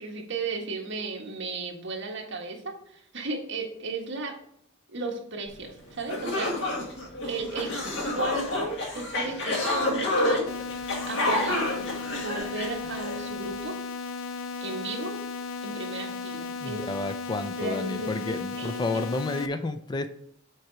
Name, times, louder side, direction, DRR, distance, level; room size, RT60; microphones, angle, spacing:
voice 1, 0.0-4.4 4.9-6.9 7.2-7.7 8.1-10.5 11.1-11.7 12.2-13.8 14.6-15.2 15.6-16.9 17.6-19.0, right 3 dB, 65° right, 0 dB, 1.7 m, -35 dB
sound 1, 5.7-5.8 6.1-13.2, left 1 dB, 65° left, 1.8 m, -29 dB
sound 2, 10.5-19.5, left 4 dB, 80° left, 0.5 m, -35 dB
voice 2, 16.6-20.1, left 3 dB, 20° left, 10 dB, 0.4 m, -31 dB
7.8 x 4.3 x 4.7 m, 0.66 s
head